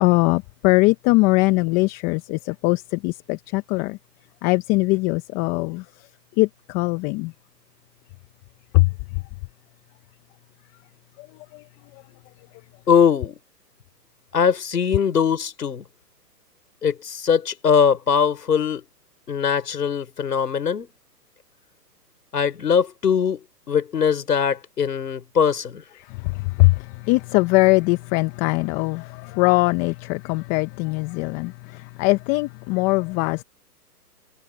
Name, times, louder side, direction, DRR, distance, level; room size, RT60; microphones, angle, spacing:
voice 1, 0.0-4.0 4.4-5.8 6.4-7.3 8.7-8.9 26.3-33.4, left 24 dB, 15° left, 0.9 m, -21 dB
voice 2, 12.9-13.4 14.3-15.8 16.8-18.8 19.3-20.9 22.3-23.4 23.7-25.8, left 7 dB, 70° left, 5.0 m, -21 dB
hypercardioid pair, 140°, 49 cm